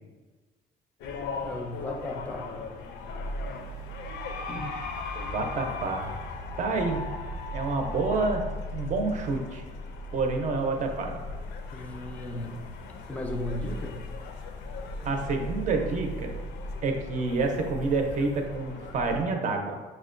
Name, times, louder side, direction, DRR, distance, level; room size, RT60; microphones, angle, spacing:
sound 1, 1.0-19.3, left 2 dB, 80° left, 0.4 m, -37 dB
voice 1, 1.3-2.6 4.5-4.8 11.7-12.8 13.1-14.1, left 1 dB, 10° left, 2 dB, 0.5 m, -36 dB
voice 2, 5.1-6.1 6.6-7.0 7.5-9.6 10.1-11.2 15.0-16.3 16.8-19.8, right 3 dB, 50° right, 3 dB, 0.6 m, -28 dB
6.0 x 2.2 x 2.5 m, 1.3 s
cardioid pair, 110°, 17 cm